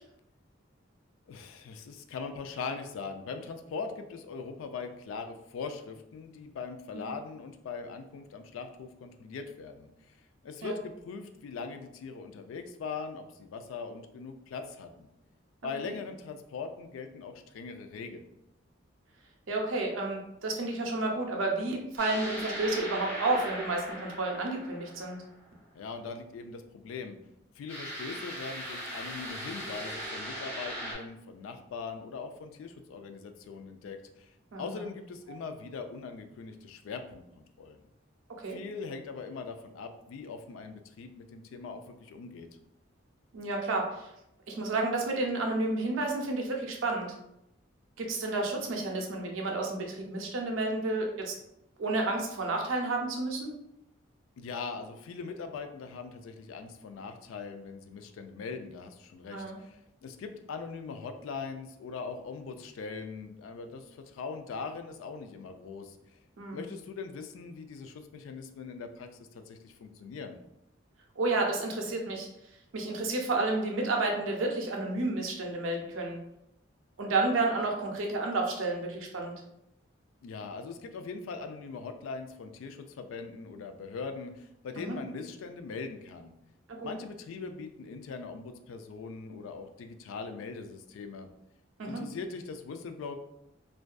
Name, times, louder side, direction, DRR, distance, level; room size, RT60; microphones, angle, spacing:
voice 1, 1.3-10.1 10.4-15.1 15.6-18.2 25.7-27.2 27.6-37.8 38.5-42.5 54.4-66.2 66.5-70.4 80.2-86.3 86.8-91.3 91.9-93.1, left 4 dB, 80° left, 8 dB, 0.3 m, -41 dB
voice 2, 15.6-16.0 19.5-25.2 34.5-34.8 38.4-38.6 43.3-44.1 44.5-47.1 48.0-51.3 51.8-53.5 59.3-59.6 66.4-66.6 71.2-72.3 72.7-76.2 77.0-79.4 84.8-85.0 86.7-86.9 91.9-92.0, right 2 dB, 80° right, 1 dB, 0.5 m, -31 dB
sound 1, 22.0-25.4 27.7-30.9, equal, 10° left, 0.9 m, -39 dB
2.5 x 2.2 x 2.2 m, 0.83 s
head